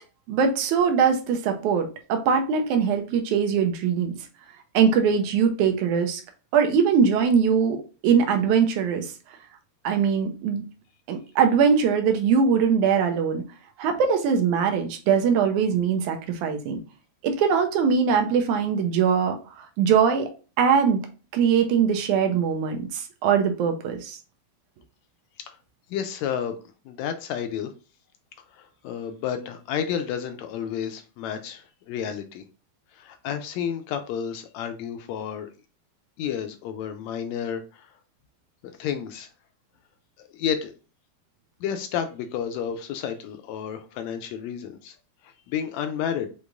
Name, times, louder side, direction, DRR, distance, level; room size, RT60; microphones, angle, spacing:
voice 1, 0.3-4.1 4.7-6.2 6.5-9.1 9.8-10.6 11.1-13.4 13.8-16.8 17.2-20.3 20.6-21.0 21.3-24.2, right 6 dB, 90° right, 5 dB, 2.2 m, -22 dB
voice 2, 25.9-26.6 26.8-27.7 28.5-32.4 32.9-35.5 36.2-37.9 38.8-39.3 40.2-40.7 41.6-44.9 45.2-46.3, left 8 dB, 80° left, 7 dB, 1.8 m, -31 dB
6.3 x 3.0 x 2.5 m, 0.34 s
omnidirectional pair, 3.4 m